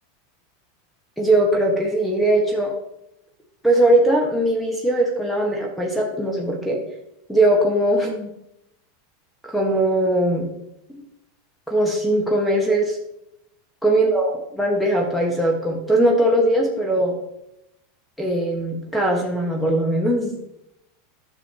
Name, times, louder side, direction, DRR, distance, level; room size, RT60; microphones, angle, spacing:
voice 1, 1.2-2.7 3.6-6.8 7.3-8.3 9.4-10.5 11.7-13.0 13.8-17.1 18.2-20.4, right 1 dB, 5° left, 0 dB, 1.4 m, -20 dB
9.8 x 6.5 x 2.9 m, 0.84 s
hypercardioid pair, 100°, 0 cm